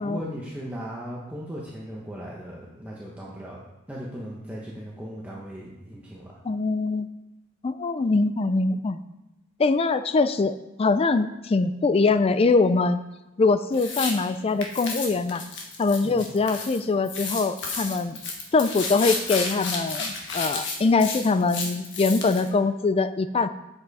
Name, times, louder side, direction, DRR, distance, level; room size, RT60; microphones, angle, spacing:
voice 1, 0.0-3.6 3.9-6.3 16.0-16.3, equal, 5° right, -5 dB, 1.1 m, -37 dB
voice 2, 6.4-7.1 7.6-9.0 9.6-13.0 13.4-15.4 15.8-18.2 18.5-23.5, left 3 dB, 30° left, 12 dB, 0.4 m, -23 dB
sound 1, 13.7-14.1 14.6-16.8 17.1-22.5, left 4 dB, 60° left, 1.5 m, -32 dB
8.6 x 7.7 x 4.1 m, 0.97 s
head